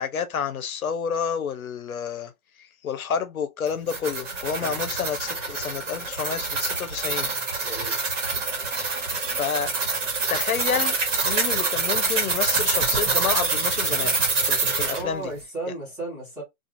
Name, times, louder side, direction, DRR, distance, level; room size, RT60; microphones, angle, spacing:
voice 1, 0.0-2.3 2.6-7.3 9.3-9.7 10.3-11.0 11.2-15.3, left 7 dB, 75° left, 0.7 m, -29 dB
sound 1, 3.7-15.0, right 4 dB, 60° right, 1.3 m, -26 dB
voice 2, 7.6-8.0 14.9-16.4, right 2 dB, 5° right, 0.7 m, -34 dB
2.5 x 2.4 x 2.8 m
hypercardioid pair, 155°, 43 cm